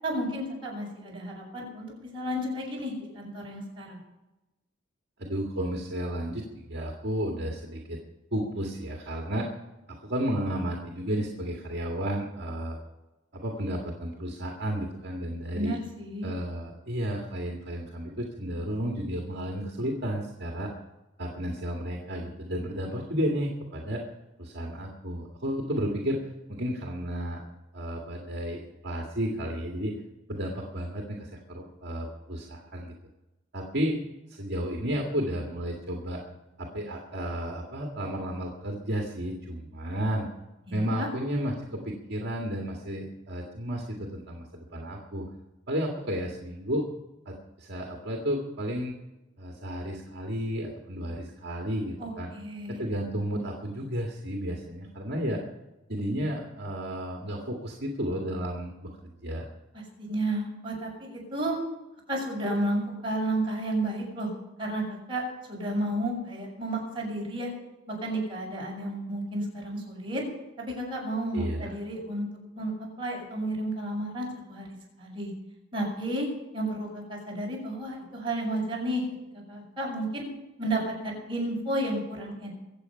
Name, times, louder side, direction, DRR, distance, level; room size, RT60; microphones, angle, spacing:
voice 1, 0.0-4.0 15.5-16.3 40.7-41.1 52.0-52.8 59.7-61.6 62.1-64.3 64.6-67.5 67.9-70.2 70.6-72.3 72.5-72.7 73.0-75.3 75.7-76.3 76.5-79.0 79.3-80.3 80.6-82.5, right 1 dB, 25° right, -3 dB, 6.5 m, -32 dB
voice 2, 5.2-8.0 8.3-9.5 9.9-12.8 13.4-15.8 16.2-20.7 21.2-24.0 24.4-26.2 26.5-27.4 27.7-29.9 30.3-32.9 33.5-34.0 34.3-36.2 36.6-40.3 40.7-45.3 45.7-46.9 47.3-49.0 49.4-52.3 52.7-55.4 55.9-59.5 71.3-71.7, equal, 60° right, 0 dB, 1.9 m, -32 dB
23.0 x 8.1 x 5.6 m, 1.0 s
head